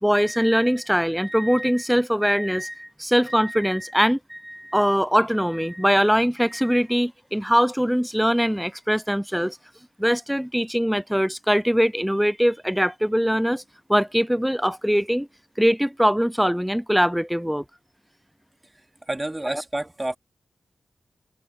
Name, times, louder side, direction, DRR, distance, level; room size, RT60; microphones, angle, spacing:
voice 1, 0.0-9.6 10.0-13.6 13.9-15.3 15.6-17.6, equal, 5° right, 0.5 m, -22 dB
voice 2, 19.1-20.2, right 1 dB, 20° right, 2.6 m, -29 dB
cardioid pair, 45°, 0 cm